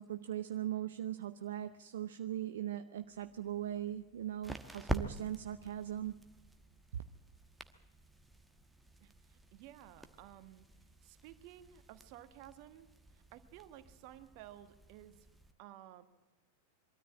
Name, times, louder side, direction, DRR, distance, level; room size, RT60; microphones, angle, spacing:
voice 1, 0.0-6.2 6.9-7.0, right 11 dB, 60° right, 10 dB, 0.6 m, -40 dB
sound 1, 3.1-15.5, right 1 dB, 5° right, 1.2 m, -47 dB
voice 2, 9.0-10.7 11.0-15.3 15.6-16.0, right 12 dB, 45° right, 10 dB, 1.4 m, -55 dB
23.0 x 13.5 x 8.7 m, 1.1 s
figure-of-eight pair, 90°, 0 cm